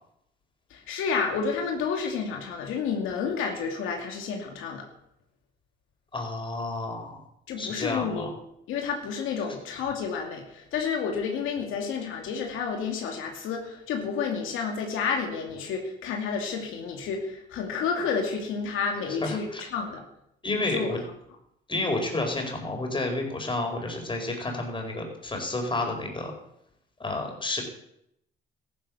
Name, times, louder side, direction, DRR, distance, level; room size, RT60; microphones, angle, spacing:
voice 1, 0.7-4.9 7.5-8.4 8.7-20.0 20.7-20.9, left 5 dB, 90° left, 2 dB, 2.6 m, -30 dB
voice 2, 6.1-7.2 7.6-8.3 19.2-19.6 20.4-21.0 21.7-26.3 27.0-27.6, left 2 dB, 25° left, 2 dB, 4.7 m, -30 dB
14.0 x 11.5 x 7.2 m, 0.77 s
cardioid pair, 90°, 20 cm